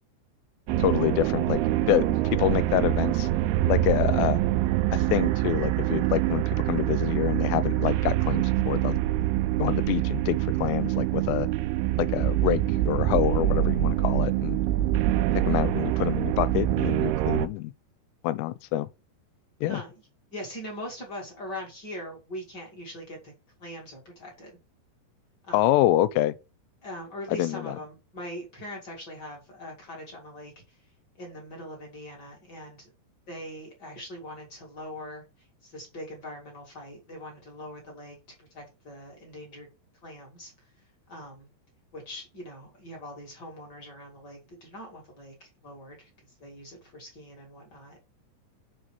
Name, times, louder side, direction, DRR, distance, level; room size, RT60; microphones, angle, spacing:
sound 1, 0.7-17.5, right 14 dB, 80° right, 2.3 m, -25 dB
voice 1, 0.8-1.6 1.9-3.3 3.7-4.4 4.9-9.0 9.6-11.5 12.0-14.6 15.5-17.7 18.2-18.9 19.6-19.8 25.5-26.4 27.3-27.8, left 14 dB, 85° left, 2.7 m, -26 dB
voice 2, 19.7-20.0 20.3-23.3 23.6-24.6 25.5-25.8 26.8-30.5 31.2-32.9 33.3-35.2 35.6-39.7 40.0-40.5 41.1-41.5 41.9-46.1 46.4-48.1, left 1 dB, 35° left, 1.9 m, -41 dB
6.8 x 3.8 x 6.2 m
omnidirectional pair, 5.0 m